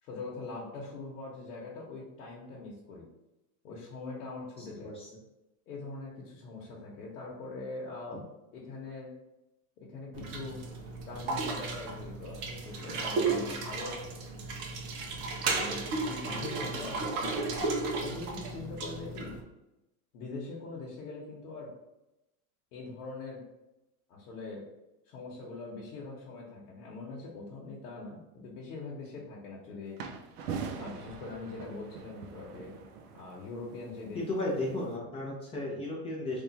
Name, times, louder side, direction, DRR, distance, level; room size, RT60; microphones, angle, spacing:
voice 1, 0.0-3.1 3.6-4.9 5.7-9.2 9.8-10.6 11.1-14.0 15.5-19.4 20.1-21.7 22.7-23.5 24.1-24.7 25.0-30.0 30.8-32.7 33.1-34.2, left 3 dB, 80° left, -4 dB, 1.1 m, -42 dB
voice 2, 4.6-5.1 34.1-36.4, left 2 dB, 15° left, -4 dB, 0.7 m, -34 dB
sound 1, 10.1-19.4, right 3 dB, 30° right, 0.5 m, -34 dB
sound 2, 30.0-35.0, right 6 dB, 85° right, 0.7 m, -43 dB
3.5 x 2.4 x 4.0 m, 0.94 s
supercardioid pair, 160°, 45 cm